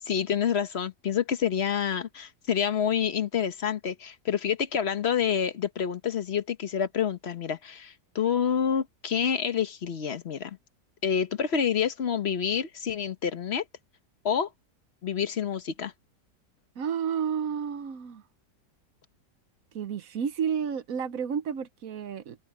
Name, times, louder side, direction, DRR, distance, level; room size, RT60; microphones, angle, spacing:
voice 1, 0.1-10.6 11.0-13.6 14.2-14.5 15.0-15.9, left 8 dB, 45° left, 1.0 m, -28 dB
voice 2, 16.8-18.2 19.7-22.4, right 7 dB, 60° right, 1.2 m, -31 dB
omnidirectional pair, 1.9 m